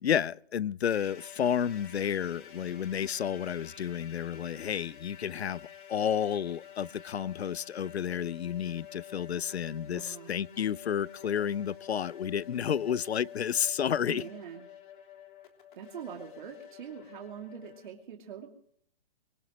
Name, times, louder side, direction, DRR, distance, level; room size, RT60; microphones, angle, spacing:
voice 1, 0.0-14.2, left 8 dB, 85° left, 0.7 m, -31 dB
sound 1, 0.8-17.9, left 9 dB, 50° left, 3.2 m, -50 dB
voice 2, 9.9-10.3 14.0-14.7 15.7-18.5, right 8 dB, 50° right, 2.7 m, -43 dB
23.0 x 19.0 x 3.1 m
hypercardioid pair, 150°, 31 cm